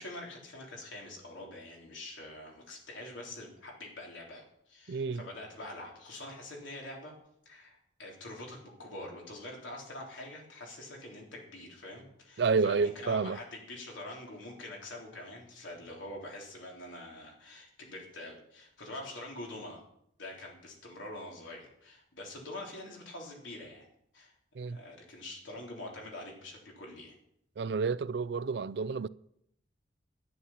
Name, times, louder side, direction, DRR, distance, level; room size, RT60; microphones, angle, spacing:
voice 1, 0.0-7.1 7.5-19.8 20.2-23.9 24.1-27.1, left 1 dB, 90° left, 3.6 m, -45 dB
voice 2, 4.9-5.2 12.4-13.4 24.6-24.8 27.6-29.1, right 4 dB, 60° right, 0.4 m, -29 dB
11.0 x 9.9 x 5.8 m
head